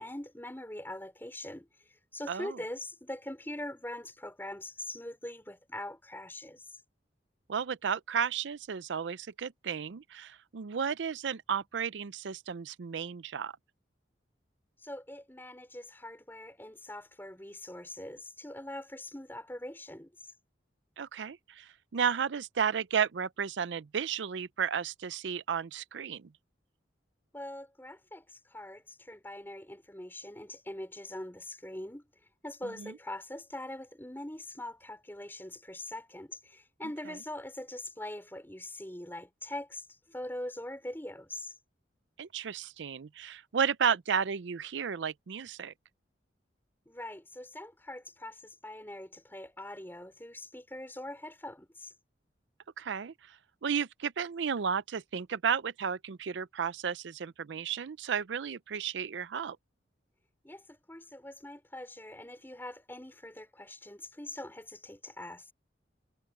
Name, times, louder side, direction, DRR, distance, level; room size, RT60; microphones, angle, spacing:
voice 1, 0.0-1.7 2.1-6.8 14.8-20.3 27.3-32.1 32.4-41.5 46.8-51.9 60.4-65.5, left 1 dB, 10° left, 4.9 m, -43 dB
voice 2, 2.3-2.6 7.5-13.5 21.0-26.3 32.8-32.9 42.2-45.7 52.8-53.1 53.6-59.6, right 7 dB, 80° right, 0.5 m, -33 dB
head